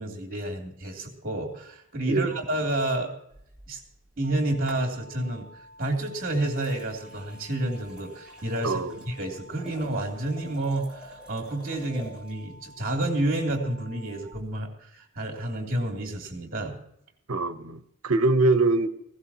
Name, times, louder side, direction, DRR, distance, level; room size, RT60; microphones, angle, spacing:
voice 1, 0.0-3.1 3.7-3.8 4.2-5.5 5.8-16.8, right 1 dB, 40° right, 1 dB, 2.9 m, -30 dB
sound 1, 3.3-4.3 4.7-5.3 5.9-12.4 14.3-14.5, right 1 dB, 5° right, 5.2 m, -49 dB
sound 2, 4.2-14.2, equal, 85° left, 3.8 m, -51 dB
voice 2, 8.6-9.0 17.3-18.9, right 3 dB, 85° right, 10 dB, 1.0 m, -23 dB
19.5 x 16.5 x 2.9 m, 0.72 s
head